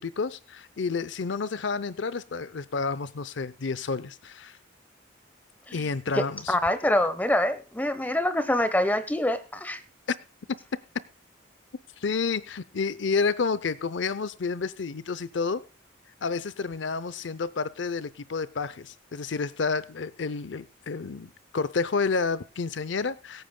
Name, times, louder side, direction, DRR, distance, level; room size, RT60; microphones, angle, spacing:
voice 1, 0.0-4.6 5.7-6.5 10.1-10.2 12.0-15.6 16.2-23.4, left 4 dB, 70° left, 17 dB, 0.6 m, -30 dB
voice 2, 6.2-9.8, left 1 dB, 10° left, 12 dB, 0.9 m, -25 dB
22.5 x 9.1 x 2.2 m, 0.33 s
head